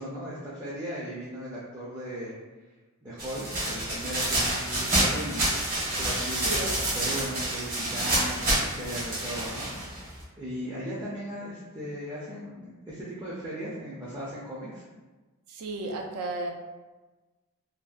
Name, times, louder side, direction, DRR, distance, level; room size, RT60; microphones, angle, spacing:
voice 1, 0.0-2.4 3.0-5.5 6.0-14.8, equal, 15° right, -8 dB, 0.4 m, -37 dB
sound 1, 3.2-10.2, right 1 dB, 40° right, 0.7 m, -28 dB
voice 2, 6.4-6.7 15.5-16.5, right 2 dB, 85° right, 2 dB, 0.4 m, -33 dB
2.6 x 2.2 x 2.3 m, 1.2 s
head